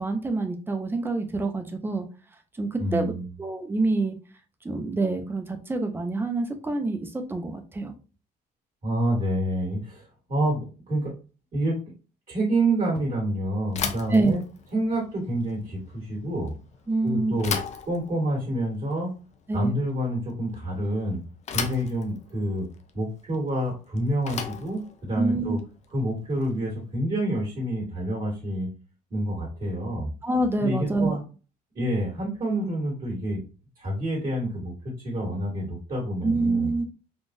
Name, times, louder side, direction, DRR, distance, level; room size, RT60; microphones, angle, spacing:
voice 1, 0.0-2.0 2.6-3.1 3.4-4.2 4.6-8.0 14.1-14.4 16.9-17.4 19.5-19.8 25.2-25.6 30.2-31.2 36.2-36.8, right 2 dB, 15° right, 5 dB, 0.6 m, -26 dB
voice 2, 2.8-3.3 8.8-11.1 11.5-11.8 12.3-14.4 14.7-16.5 17.0-17.6 17.8-19.1 19.5-21.2 21.5-22.7 22.9-25.6 25.9-28.7 29.1-30.1 30.6-31.2 31.7-33.4 33.8-36.7, right 1 dB, 45° right, -4 dB, 1.8 m, -28 dB
Bicycle / Thump thud, 13.7-26.8, left 6 dB, 45° left, 0.5 m, -37 dB
3.7 x 2.4 x 2.5 m, 0.33 s
cardioid pair, 110°, 17 cm